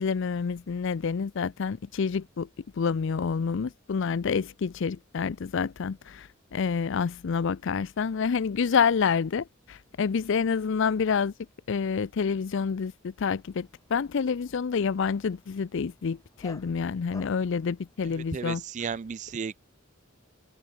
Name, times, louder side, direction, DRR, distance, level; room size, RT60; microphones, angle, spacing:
voice 1, 0.0-2.5 2.8-11.3 11.7-18.6, left 6 dB, 65° left, 0.4 m, -28 dB
Dog, 13.3-18.6, left 2 dB, 15° left, 1.2 m, -54 dB
voice 2, 18.0-19.6, right 6 dB, 35° right, 0.4 m, -34 dB
head